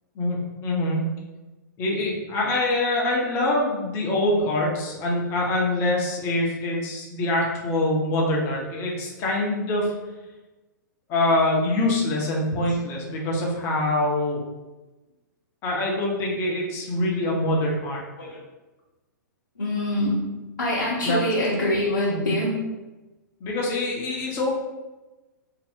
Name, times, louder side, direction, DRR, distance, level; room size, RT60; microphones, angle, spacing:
voice 1, 0.2-1.0 1.8-9.9 11.1-14.4 15.6-18.0 21.0-21.2 22.1-22.3 23.4-24.5, left 1 dB, 25° left, -2 dB, 0.6 m, -24 dB
voice 2, 19.6-20.2 20.6-22.6, left 1 dB, 75° left, -8 dB, 0.7 m, -24 dB
2.6 x 2.0 x 3.5 m, 1.1 s
figure-of-eight pair, 110°, 10 cm